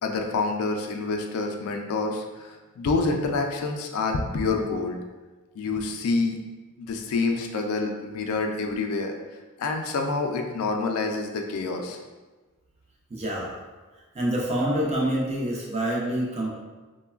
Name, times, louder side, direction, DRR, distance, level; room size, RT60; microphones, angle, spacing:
voice 1, 0.0-5.0 5.6-6.4 6.8-9.1 9.6-12.0, left 3 dB, 75° left, 3 dB, 0.3 m, -27 dB
voice 2, 13.1-13.5 14.1-16.5, right 1 dB, 30° right, -3 dB, 0.5 m, -26 dB
3.1 x 2.1 x 2.3 m, 1.2 s
head